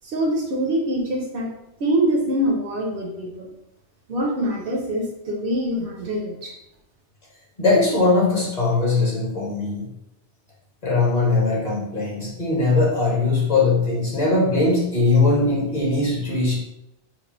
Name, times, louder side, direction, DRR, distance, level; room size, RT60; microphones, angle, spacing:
voice 1, 0.0-1.5 1.8-3.5 4.1-6.5, right 1 dB, 65° right, 0 dB, 0.8 m, -24 dB
voice 2, 7.6-9.9 10.8-16.5, left 3 dB, 40° left, -5 dB, 1.1 m, -20 dB
4.5 x 2.3 x 2.9 m, 0.85 s
omnidirectional pair, 1.1 m